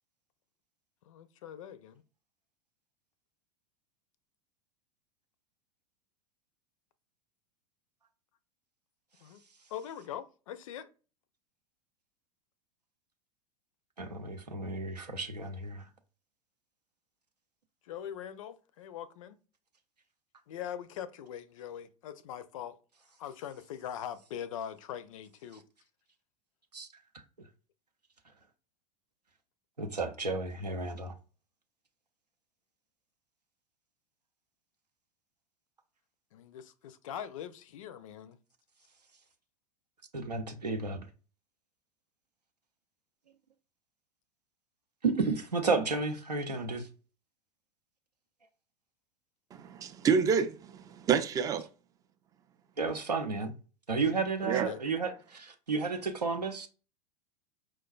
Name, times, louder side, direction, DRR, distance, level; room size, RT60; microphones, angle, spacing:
voice 1, 1.1-2.0 9.2-9.4 9.7-10.9 17.9-19.4 20.5-22.8 23.2-25.6 36.3-38.4 54.1-54.8, left 9 dB, 55° left, 0.4 m, -42 dB
voice 2, 14.0-15.9 26.7-26.9 29.8-31.1 40.1-41.1 45.0-46.9 52.8-53.5 53.9-56.7, right 4 dB, 85° right, 0.6 m, -32 dB
voice 3, 49.5-51.7 54.5-54.7, right 6 dB, 20° right, 0.3 m, -28 dB
4.6 x 2.2 x 2.3 m
figure-of-eight pair, 90°, 20 cm